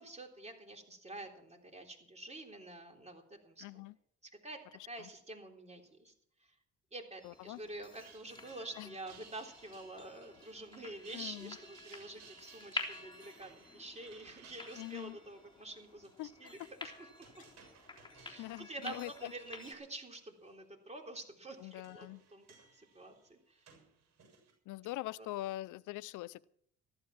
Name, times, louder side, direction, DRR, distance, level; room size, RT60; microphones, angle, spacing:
voice 1, 0.0-3.9 4.4-6.1 6.4-6.5 6.9-16.1 16.4-16.6 16.8-17.4 18.2-22.5 22.7-23.7 25.2-25.3, right 2 dB, 20° right, 2 dB, 3.5 m, -48 dB
voice 2, 3.6-3.9 5.0-5.1 7.2-7.6 8.8-8.9 11.1-11.6 14.8-15.2 16.2-16.3 17.4-17.5 18.4-19.3 21.6-22.2 24.7-26.5, left 17 dB, 90° left, 19 dB, 0.5 m, -43 dB
sound 1, 7.2-19.7, left 3 dB, 15° left, 3.6 m, -49 dB
sound 2, 7.7-19.5 19.9-20.5 21.3-24.5, right 6 dB, 60° right, 6.9 m, -61 dB
14.5 x 12.5 x 5.9 m, 0.66 s
cardioid pair, 90°, 30 cm